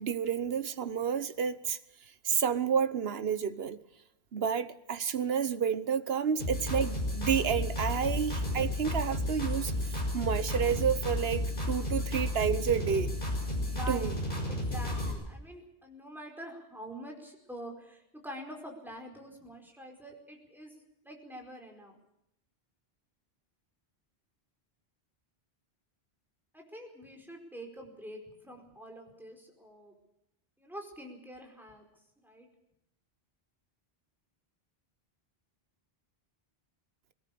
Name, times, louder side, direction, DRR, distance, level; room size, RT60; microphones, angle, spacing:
voice 1, 0.0-1.8 2.2-3.8 4.3-13.1 13.9-14.1, right 7 dB, 75° right, 1.3 m, -30 dB
sound 1, 6.4-15.1, left 1 dB, 55° left, 6.0 m, -32 dB
voice 2, 13.6-14.1 14.5-20.7 21.0-22.0 26.5-29.9 30.6-31.9 32.2-32.5, right 1 dB, ahead, 4.8 m, -46 dB
21.0 x 18.5 x 8.5 m
omnidirectional pair, 1.0 m